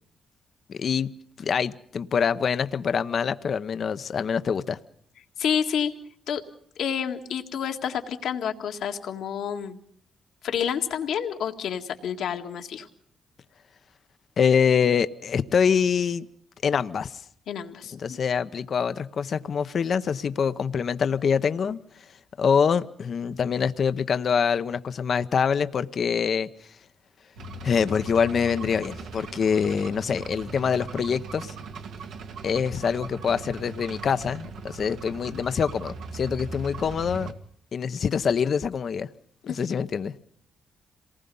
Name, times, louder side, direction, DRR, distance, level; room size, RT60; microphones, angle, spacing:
voice 1, 0.7-1.1 1.4-4.8 14.4-16.3 16.6-17.2 17.9-21.8 22.4-26.5 27.6-31.5 32.4-37.3 37.7-39.1 39.5-40.1, left 6 dB, 55° left, 0.8 m, -25 dB
voice 2, 5.4-5.9 6.3-6.4 6.8-9.8 10.4-12.9 17.5-18.2 39.4-39.8, left 8 dB, 80° left, 1.9 m, -29 dB
sound 1, 27.4-37.3, right 2 dB, 85° right, 1.9 m, -39 dB
27.0 x 19.5 x 5.5 m
cardioid pair, 80°, 0 cm